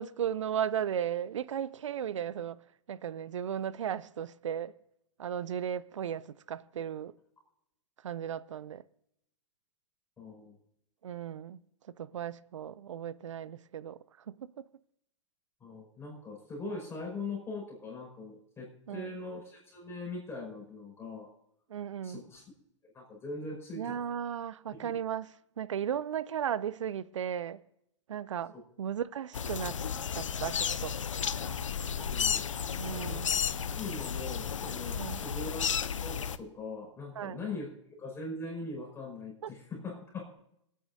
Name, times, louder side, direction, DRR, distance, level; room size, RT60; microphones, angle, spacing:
voice 1, 0.0-2.6 2.9-4.7 5.2-7.1 8.0-8.8 11.0-11.6 11.9-14.6 18.9-19.2 21.7-22.2 23.7-27.6 28.1-29.8 30.1-31.0 32.8-33.3 35.0-35.2 37.2-37.4 39.4-39.5, right 9 dB, 80° right, 0.5 m, -36 dB
voice 2, 10.2-10.6 15.6-21.3 22.0-22.4 22.8-24.0 24.7-25.0 28.5-28.6 32.1-32.4 32.8-33.2 33.7-40.4, left 3 dB, 15° left, 5.2 m, -41 dB
sound 1, 29.3-36.4, left 7 dB, 85° left, 0.5 m, -33 dB
27.0 x 9.3 x 2.6 m
hypercardioid pair, 110°, 16 cm